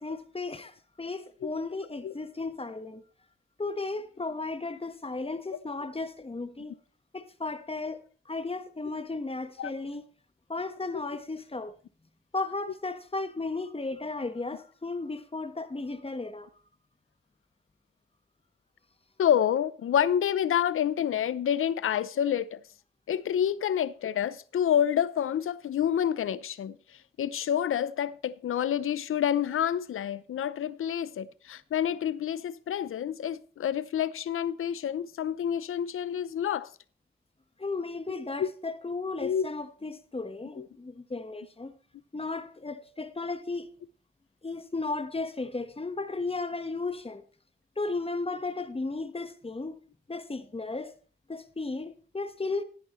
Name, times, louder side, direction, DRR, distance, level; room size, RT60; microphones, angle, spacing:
voice 1, 0.0-3.0 3.6-6.7 7.1-8.0 8.3-10.0 10.5-11.7 12.3-16.5 37.6-41.7 42.1-43.7 44.4-47.2 47.8-49.7 50.1-50.9 51.3-52.6, left 3 dB, 25° left, 1.3 m, -35 dB
voice 2, 19.2-22.6 23.1-26.8 27.2-36.7 38.4-38.5 39.2-39.5 40.6-40.7, left 9 dB, 80° left, 0.6 m, -28 dB
13.0 x 11.0 x 3.1 m
cardioid pair, 65°, 21 cm